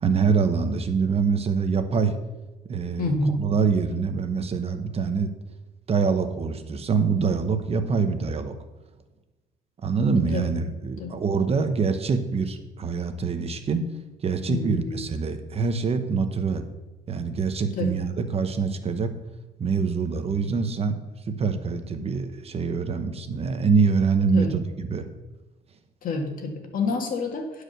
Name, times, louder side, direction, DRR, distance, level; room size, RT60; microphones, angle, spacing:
voice 1, 0.0-2.2 2.7-5.3 5.9-8.5 9.8-13.9 14.2-16.7 17.1-19.1 19.6-21.0 21.3-25.0, right 5 dB, 35° right, 8 dB, 0.9 m, -25 dB
voice 2, 3.0-3.5 10.3-10.5 11.0-11.2 14.5-15.1 17.8-17.9 24.3-24.5 26.0-27.6, left 3 dB, 55° left, 2 dB, 2.0 m, -28 dB
10.5 x 4.9 x 6.6 m, 1.1 s
cardioid pair, 110°, 17 cm